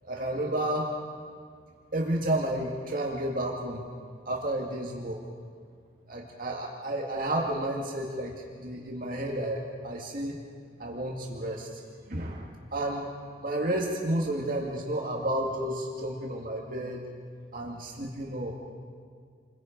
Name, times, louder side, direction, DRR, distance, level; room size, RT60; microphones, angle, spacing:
voice 1, 0.0-0.9 1.9-3.8 4.3-5.2 6.1-10.4 10.8-11.7 12.1-13.1 13.4-17.1 17.5-18.5, right 1 dB, 50° right, -2 dB, 2.1 m, -31 dB
29.0 x 23.0 x 5.2 m, 2.1 s
head